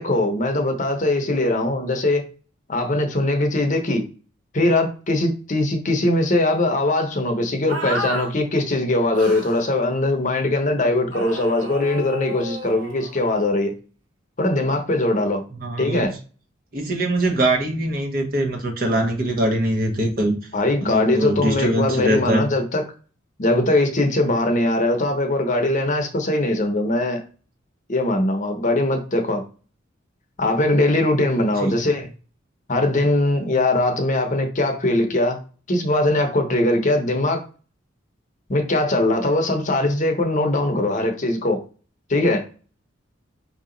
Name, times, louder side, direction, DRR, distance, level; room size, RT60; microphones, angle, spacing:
voice 1, 0.0-2.2 2.7-4.0 4.5-13.7 14.4-15.4 15.8-16.1 20.5-22.8 23.4-27.2 27.9-29.4 30.4-32.1 32.7-35.4 35.7-37.4 38.5-41.6 42.1-42.5, left 2 dB, 40° left, 0.8 m, -21 dB
sound 1, 7.7-8.3 9.1-9.6 11.1-13.4, equal, 70° right, 1.4 m, -32 dB
voice 2, 15.5-16.1 16.7-20.3 20.8-22.5 31.4-31.8, right 1 dB, 50° right, 1.1 m, -23 dB
4.5 x 2.8 x 3.8 m
head